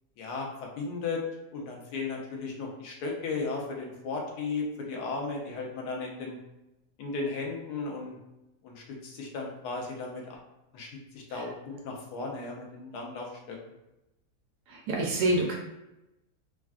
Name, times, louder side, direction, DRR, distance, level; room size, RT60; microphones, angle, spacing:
voice 1, 0.2-0.5 0.8-1.2 1.5-6.4 7.0-8.2 8.6-10.4 10.7-13.6, left 4 dB, 75° left, 0 dB, 1.2 m, -35 dB
voice 2, 14.7-15.6, right 1 dB, 75° right, -1 dB, 1.1 m, -27 dB
3.4 x 2.2 x 2.3 m, 0.94 s
omnidirectional pair, 1.9 m